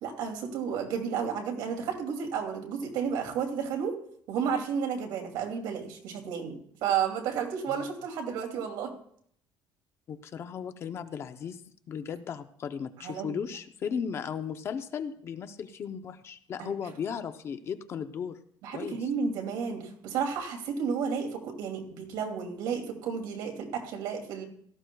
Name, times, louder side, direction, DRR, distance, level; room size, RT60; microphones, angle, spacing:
voice 1, 0.0-4.0 4.3-8.9 13.0-13.4 16.6-16.7 18.6-24.4, right 6 dB, 80° right, 3 dB, 2.6 m, -32 dB
voice 2, 7.7-8.0 10.1-11.6 11.9-18.4 18.7-19.0, left 7 dB, 35° left, 9 dB, 0.6 m, -36 dB
17.0 x 13.5 x 2.3 m, 0.64 s
cardioid pair, 165°, 8 cm